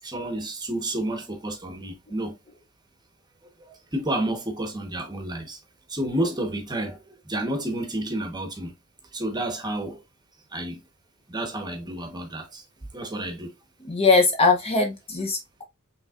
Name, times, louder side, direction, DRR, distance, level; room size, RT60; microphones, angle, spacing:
voice 1, 0.0-2.3 3.7-5.6 5.9-8.7 9.1-10.0 10.5-10.8 11.3-12.6 12.9-13.5, right 1 dB, 20° right, 0.9 m, -30 dB
voice 2, 13.8-15.6, left 4 dB, 30° left, 0.6 m, -21 dB
5.3 x 3.3 x 2.3 m
head